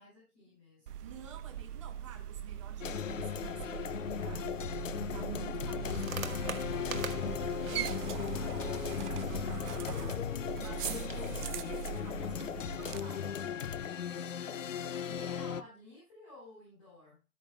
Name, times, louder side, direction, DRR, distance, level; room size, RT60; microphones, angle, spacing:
voice 1, 0.0-1.0 5.1-5.4 14.3-17.2, left 2 dB, 20° left, 4.9 m, -55 dB
sound 1, 0.9-13.0, right 10 dB, 85° right, 0.6 m, -41 dB
voice 2, 1.0-13.5, right 6 dB, 20° right, 1.0 m, -53 dB
sound 2, 2.8-15.6, left 8 dB, 55° left, 0.7 m, -37 dB
sound 3, 5.8-13.2, right 6 dB, 60° right, 1.4 m, -46 dB
12.5 x 9.1 x 2.3 m
hypercardioid pair, 170°, 45 cm